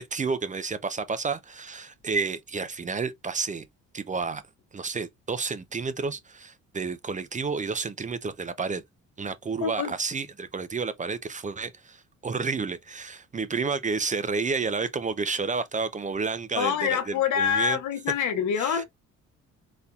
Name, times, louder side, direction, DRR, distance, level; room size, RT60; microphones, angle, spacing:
voice 1, 0.0-3.7 3.9-4.4 4.7-8.8 9.2-17.8 18.6-18.8, right 4 dB, 25° right, 0.5 m, -30 dB
voice 2, 9.6-9.9 16.5-18.8, left 8 dB, 75° left, 0.9 m, -26 dB
4.0 x 2.7 x 2.3 m
cardioid pair, 90°, 30 cm